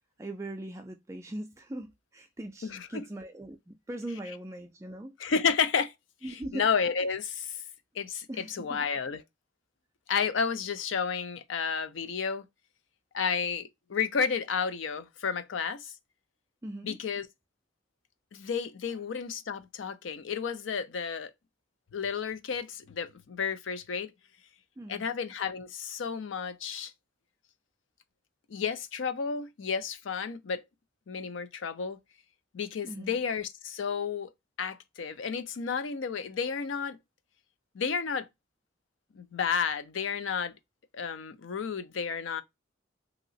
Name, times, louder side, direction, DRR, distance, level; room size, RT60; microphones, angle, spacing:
voice 1, 0.2-5.2 6.2-6.7 8.3-8.8 16.6-17.0 24.8-25.1 32.8-33.2, right 1 dB, 15° right, 0.3 m, -40 dB
voice 2, 2.6-3.0 5.2-5.9 6.5-7.6 8.0-9.2 10.1-12.5 13.1-15.9 16.8-17.3 18.3-21.3 21.9-24.1 24.9-26.9 28.5-30.6 31.1-32.0 32.5-34.3 34.6-37.0 37.7-38.3 39.1-40.5 40.9-42.4, left 6 dB, 90° left, 0.5 m, -31 dB
2.9 x 2.9 x 2.6 m
head